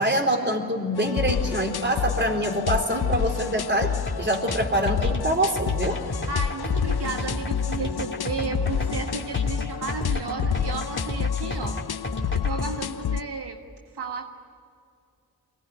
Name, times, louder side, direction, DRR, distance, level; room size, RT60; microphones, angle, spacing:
voice 1, 0.0-6.0, right 1 dB, 30° right, 4 dB, 4.2 m, -25 dB
sound 1, 1.0-13.2, left 8 dB, 70° left, 0.7 m, -29 dB
sound 2, 4.1-12.7, left 1 dB, 30° left, 2.4 m, -32 dB
voice 2, 6.3-13.6 13.9-14.3, right 4 dB, 80° right, 2 dB, 1.7 m, -33 dB
24.0 x 18.5 x 9.6 m, 2.4 s
cardioid pair, 40°, 39 cm